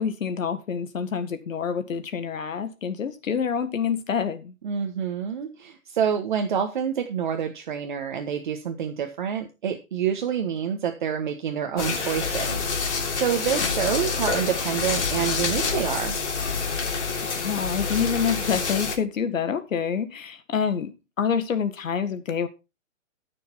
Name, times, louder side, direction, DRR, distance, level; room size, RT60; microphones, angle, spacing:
voice 1, 0.0-4.5 17.4-22.5, left 7 dB, 80° left, 1.8 m, -27 dB
voice 2, 4.6-16.2, right 8 dB, 35° right, 1.3 m, -27 dB
sound 1, 11.8-19.0, left 5 dB, 60° left, 3.3 m, -27 dB
13.5 x 6.7 x 4.2 m
hypercardioid pair, 175°, 39 cm